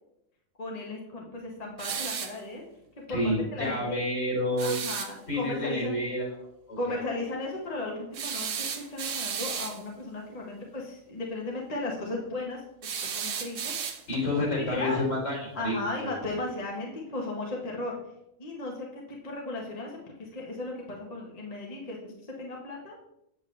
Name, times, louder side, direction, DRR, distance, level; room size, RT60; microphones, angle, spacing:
voice 1, 0.6-2.6 3.1-4.0 4.6-6.0 6.8-14.0 14.3-15.1 15.5-18.0 18.4-23.0, left 2 dB, 30° left, -1 dB, 1.2 m, -36 dB
sound 1, 1.8-2.4 4.6-5.1 8.1-9.8 12.8-14.3, right 7 dB, 70° right, 1.1 m, -34 dB
voice 2, 3.1-4.7 5.3-6.3 6.7-7.0 14.1-15.8 16.0-16.1, left 1 dB, 65° left, -3 dB, 4.0 m, -29 dB
8.0 x 7.8 x 3.2 m, 0.82 s
omnidirectional pair, 1.4 m